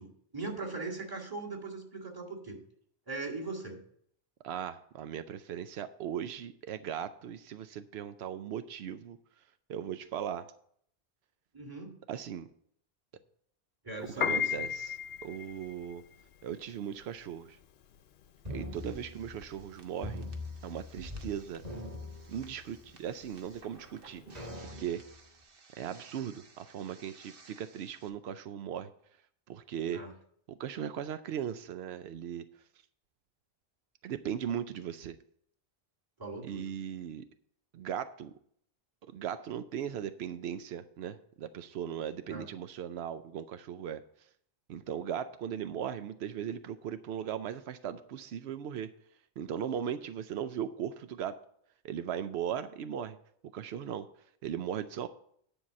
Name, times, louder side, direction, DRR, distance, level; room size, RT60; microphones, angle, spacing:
voice 1, 0.0-2.6 3.1-3.8 11.5-12.0 13.8-14.7 29.9-30.1 36.2-36.7 42.3-42.5, right 3 dB, 20° right, -2 dB, 2.0 m, -40 dB
voice 2, 4.4-9.2 9.7-10.5 12.1-12.5 14.2-16.0 16.4-17.6 18.5-20.3 20.6-21.7 22.3-24.2 24.6-25.0 25.8-28.9 29.5-30.0 30.5-32.4 34.0-35.2 36.4-37.3 37.7-38.3 39.0-44.0 44.7-48.9 49.4-51.4 51.8-53.2 53.5-54.1 54.4-55.1, right 9 dB, 85° right, 11 dB, 0.8 m, -38 dB
Piano, 14.1-24.5, left 8 dB, 80° left, 0.9 m, -37 dB
sound 1, 18.4-19.7 20.0-21.3 21.6-22.9 23.5-23.6 24.3-25.2, left 2 dB, 40° right, 2.6 m, -42 dB
sound 2, 18.7-28.1, right 3 dB, 65° right, 1.2 m, -55 dB
10.0 x 4.7 x 7.4 m, 0.66 s
omnidirectional pair, 1.0 m